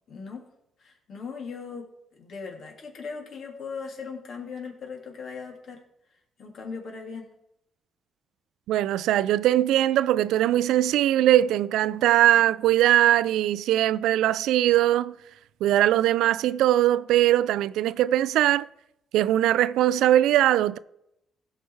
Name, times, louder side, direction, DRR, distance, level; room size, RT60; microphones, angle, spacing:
voice 1, 0.1-0.4 0.8-1.9 2.2-5.8 6.4-7.3, left 5 dB, 60° left, 2.9 m, -38 dB
voice 2, 8.7-15.2 15.6-18.7 19.1-20.8, right 13 dB, 85° right, 0.4 m, -21 dB
16.0 x 5.7 x 4.8 m
cardioid pair, 90°, 0 cm